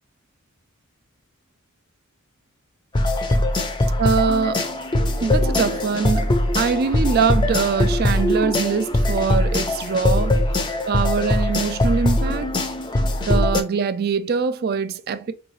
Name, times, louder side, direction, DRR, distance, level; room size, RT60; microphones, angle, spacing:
sound 1, 2.9-13.6, left 1 dB, 20° left, 0.5 m, -21 dB
voice 1, 4.0-4.6 5.2-10.4 10.9-12.5 13.2-15.3, right 5 dB, 45° right, 0.3 m, -23 dB
4.6 x 2.6 x 3.1 m
head